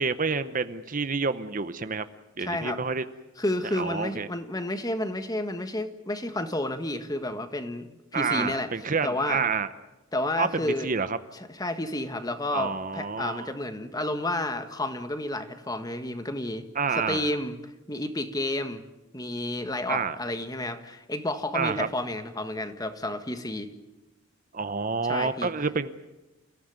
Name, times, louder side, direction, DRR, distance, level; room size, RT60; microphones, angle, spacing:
voice 1, 0.0-2.1 2.4-3.0 3.8-4.3 8.1-9.7 10.4-11.2 12.5-13.5 16.7-17.3 19.9-20.2 21.5-21.9 24.5-25.9, right 5 dB, 40° right, 12 dB, 0.8 m, -28 dB
voice 2, 2.4-2.8 3.4-7.9 8.1-8.7 9.0-9.4 10.1-10.9 11.3-16.6 16.9-17.6 17.9-18.8 19.1-23.7 25.0-25.5, left 1 dB, 20° left, 8 dB, 1.6 m, -31 dB
29.0 x 16.0 x 9.5 m, 1.0 s
head